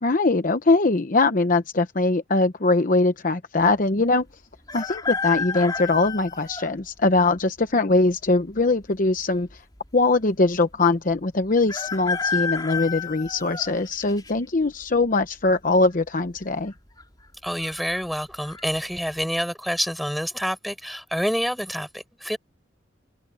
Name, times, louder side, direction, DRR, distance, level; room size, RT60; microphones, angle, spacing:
voice 1, 0.0-4.3 4.7-9.5 9.9-16.7, left 3 dB, 45° left, 0.9 m, -21 dB
sound 1, 4.7-6.7 7.4-7.5 8.6-9.2 9.5-9.6 9.8-9.9 11.7-14.3 14.8-15.2 16.4-16.7 17.0-17.1 17.6-18.0 18.4-18.6, left 5 dB, 20° left, 3.5 m, -30 dB
voice 2, 17.4-22.4, equal, ahead, 5.0 m, -27 dB
open air
head